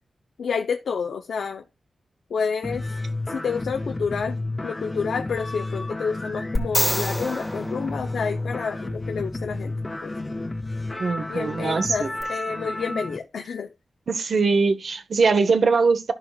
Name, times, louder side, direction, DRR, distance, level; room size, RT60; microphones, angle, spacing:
voice 1, 0.4-1.6 2.3-2.9 3.3-9.7 10.0-10.1 11.3-13.7, left 5 dB, 85° left, 0.7 m, -29 dB
break processed, 2.6-13.2, left 2 dB, 20° left, 0.6 m, -31 dB
sound 1, 6.6-8.8 12.2-12.3, equal, 5° left, 1.6 m, -28 dB
voice 2, 11.0-12.1 14.1-16.1, right 4 dB, 55° right, 1.1 m, -21 dB
13.5 x 5.8 x 2.4 m
wide cardioid pair, 145°, 0 cm